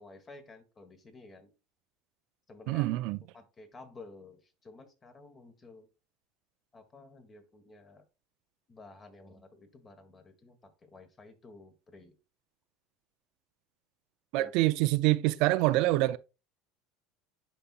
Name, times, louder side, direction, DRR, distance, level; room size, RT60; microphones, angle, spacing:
voice 1, 0.0-1.5 2.5-2.8 3.3-5.9 6.7-8.1 8.7-12.2 14.4-14.5, left 3 dB, 30° left, 1.5 m, -52 dB
voice 2, 2.7-3.2 14.3-16.2, right 18 dB, 70° right, 0.4 m, -26 dB
10.0 x 4.1 x 2.4 m
supercardioid pair, 100°, 0 cm